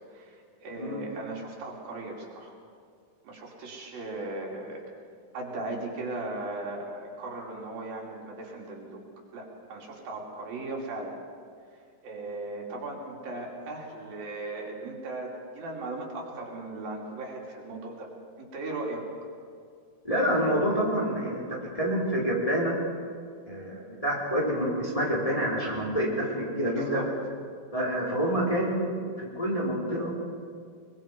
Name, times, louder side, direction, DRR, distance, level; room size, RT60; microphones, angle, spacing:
voice 1, 0.1-2.6 3.2-4.8 5.3-9.0 9.3-11.2 12.0-18.1 18.4-19.1 26.7-27.1, right 2 dB, 85° right, -1 dB, 4.9 m, -37 dB
voice 2, 20.0-22.7 23.5-27.0 27.7-30.2, equal, 10° left, -5 dB, 4.2 m, -27 dB
23.5 x 22.5 x 5.4 m, 2.2 s
omnidirectional pair, 4.0 m